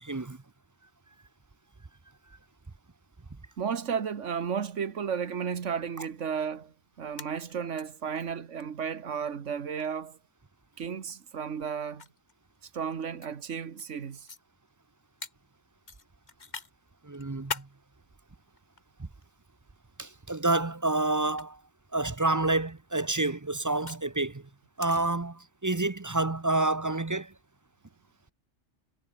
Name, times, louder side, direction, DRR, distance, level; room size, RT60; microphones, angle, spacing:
voice 1, 0.0-0.4 17.0-17.7 20.0-21.6 21.9-24.4 24.8-27.3, right 2 dB, 20° right, 0.6 m, -28 dB
voice 2, 3.6-10.2 10.8-12.0 12.6-14.3, right 7 dB, 90° right, 1.7 m, -33 dB
sound 1, 7.0-7.8 8.2-8.3 8.6-8.7 9.8-10.0 11.1-11.2 12.0-13.3 13.8-13.9 14.3-14.4 15.2-15.3 15.9-16.7 17.1-17.7 18.6-19.3 20.3-20.6 21.3-21.4 22.8-24.1 24.8-25.0, left 4 dB, 40° left, 1.7 m, -40 dB
omnidirectional pair, 1.2 m